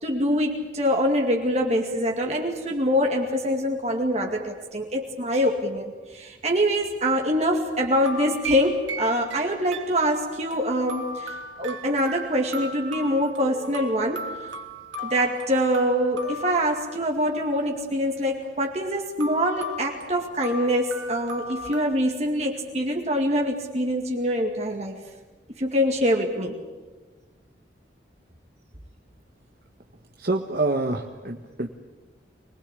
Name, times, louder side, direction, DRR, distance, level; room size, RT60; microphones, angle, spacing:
voice 1, 0.0-14.2 15.0-24.9 25.6-26.6, equal, 35° right, 1 dB, 2.3 m, -24 dB
sound 1, 8.0-17.4 19.2-21.9, equal, 90° right, 2.9 m, -37 dB
voice 2, 30.2-31.7, right 2 dB, 50° right, 3 dB, 1.4 m, -26 dB
25.5 x 20.5 x 8.4 m, 1.3 s
head